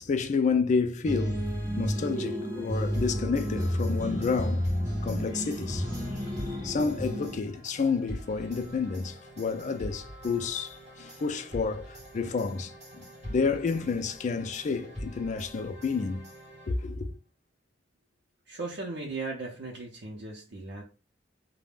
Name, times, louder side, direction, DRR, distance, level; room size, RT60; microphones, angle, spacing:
voice 1, 0.0-1.5 1.8-4.7 5.0-5.9 6.6-16.3 16.7-17.1, left 4 dB, 40° left, 0.3 m, -30 dB
sound 1, 1.0-7.4, equal, 20° right, 1.3 m, -31 dB
sound 2, 2.9-17.1, equal, 35° right, 1.2 m, -44 dB
voice 2, 18.5-20.8, right 3 dB, 65° right, 0.6 m, -37 dB
2.4 x 2.1 x 3.3 m
head